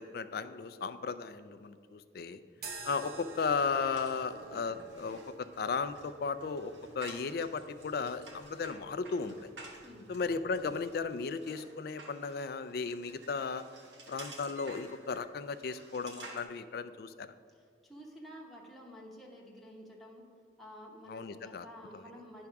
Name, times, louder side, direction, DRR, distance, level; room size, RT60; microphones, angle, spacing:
voice 1, 0.0-2.4 2.8-9.5 10.1-13.7 14.1-17.3 21.1-21.7, left 5 dB, 55° left, 12 dB, 0.3 m, -35 dB
sound 1, 2.6-11.1, right 3 dB, 55° right, 0.8 m, -52 dB
sound 2, 2.9-16.4, right 3 dB, 90° right, 1.3 m, -53 dB
voice 2, 17.5-20.3 20.6-22.5, equal, ahead, -3 dB, 0.9 m, -51 dB
9.8 x 3.5 x 5.8 m, 2.1 s
head